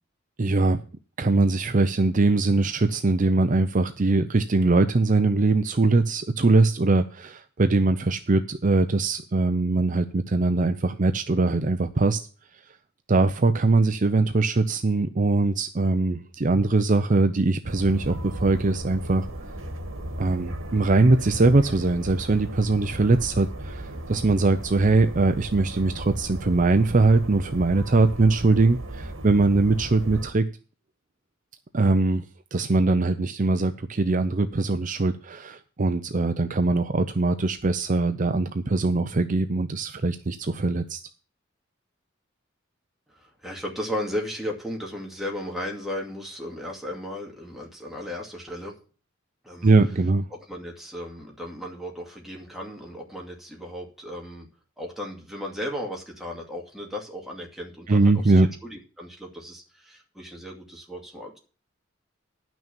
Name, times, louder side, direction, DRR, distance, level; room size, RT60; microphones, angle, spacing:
voice 1, 0.4-0.8 1.2-12.2 13.1-19.3 20.2-30.5 31.7-32.2 32.5-41.0 49.6-50.3 57.9-58.5, right 3 dB, 40° right, 8 dB, 0.6 m, -22 dB
sound 1, 17.6-30.3, right 1 dB, 80° right, 1.9 m, -36 dB
voice 2, 43.1-48.7 49.4-49.7 50.3-54.5 54.8-61.4, left 1 dB, ahead, -1 dB, 2.3 m, -35 dB
10.5 x 6.2 x 7.0 m, 0.38 s
head